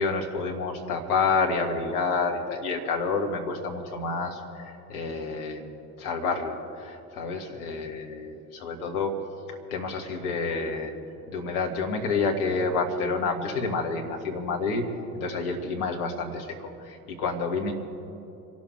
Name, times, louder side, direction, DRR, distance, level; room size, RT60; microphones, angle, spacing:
voice 1, 0.0-9.2 9.5-10.9 11.3-14.9 15.1-17.7, left 4 dB, 70° left, 3 dB, 2.1 m, -29 dB
26.5 x 12.5 x 3.4 m, 2.8 s
figure-of-eight pair, 60°, 47 cm